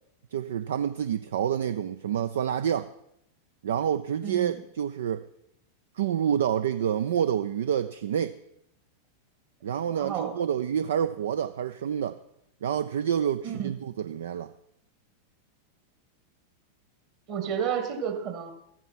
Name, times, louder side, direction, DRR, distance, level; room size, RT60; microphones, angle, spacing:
voice 1, 0.3-2.9 3.6-5.2 6.0-8.4 9.6-12.2 12.6-14.5, right 9 dB, 60° right, 0.4 m, -28 dB
voice 2, 4.2-4.6 9.9-10.4 13.4-13.7 17.3-18.5, right 8 dB, 40° right, 2.0 m, -31 dB
14.0 x 9.0 x 5.7 m
figure-of-eight pair, 90°, 0 cm